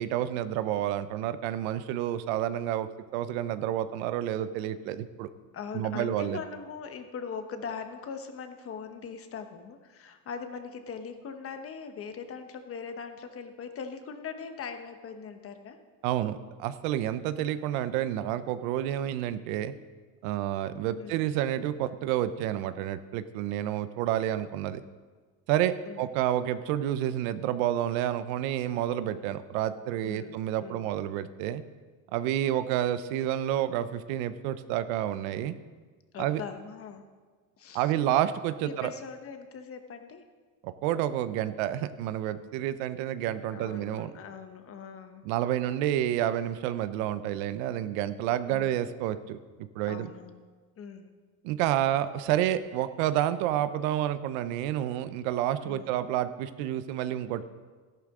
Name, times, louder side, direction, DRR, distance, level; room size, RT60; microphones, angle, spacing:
voice 1, 0.0-5.3 5.7-6.4 16.0-19.7 20.2-24.8 25.5-31.6 32.1-35.5 36.2-36.4 37.7-38.9 40.6-44.1 45.2-49.4 49.7-50.1 51.4-57.4, right 12 dB, 80° right, 13 dB, 0.8 m, -29 dB
voice 2, 5.5-15.8 21.0-21.3 25.8-26.1 30.0-30.9 36.1-37.0 37.6-37.9 38.6-40.2 43.5-45.2 48.5-48.9 49.8-50.4 50.8-51.1 55.6-56.0, left 6 dB, 35° left, 7 dB, 1.2 m, -41 dB
13.5 x 11.5 x 3.7 m, 1.4 s
supercardioid pair, 125°, 40 cm